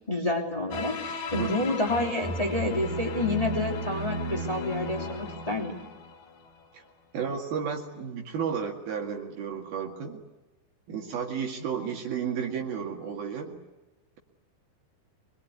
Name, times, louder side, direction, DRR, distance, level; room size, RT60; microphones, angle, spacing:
voice 1, 0.1-5.8, left 2 dB, 10° left, 0 dB, 2.7 m, -29 dB
sound 1, 0.7-6.5, equal, 55° left, 2.6 m, -34 dB
voice 2, 1.4-1.7 6.7-6.9 7.1-10.2 10.9-13.6, right 7 dB, 65° right, 1 dB, 3.8 m, -32 dB
25.0 x 22.0 x 9.5 m, 1.1 s
omnidirectional pair, 4.9 m